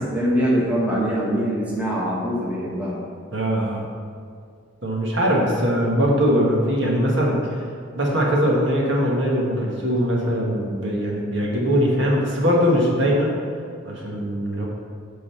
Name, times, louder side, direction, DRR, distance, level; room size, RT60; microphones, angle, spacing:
voice 1, 0.0-3.0, equal, 5° right, -6 dB, 1.4 m, -23 dB
voice 2, 3.3-3.8 4.8-7.7 7.9-13.3 13.8-14.7, equal, 65° right, -3 dB, 1.6 m, -21 dB
8.7 x 4.0 x 6.9 m, 2.2 s
head